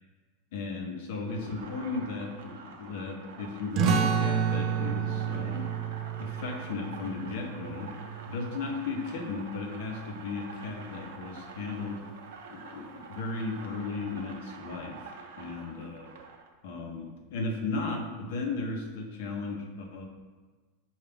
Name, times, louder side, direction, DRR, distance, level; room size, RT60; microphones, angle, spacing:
voice 1, 0.5-5.7 6.2-7.9 8.3-12.0 12.5-15.1 15.4-16.1 16.6-20.1, left 3 dB, 65° left, 2 dB, 0.7 m, -35 dB
sound 1, 1.3-16.5, right 5 dB, 85° right, 0.6 m, -47 dB
sound 2, 3.8-9.0, right 7 dB, 35° right, 0.4 m, -30 dB
5.6 x 2.4 x 3.5 m, 1.3 s
supercardioid pair, 165°, 0 cm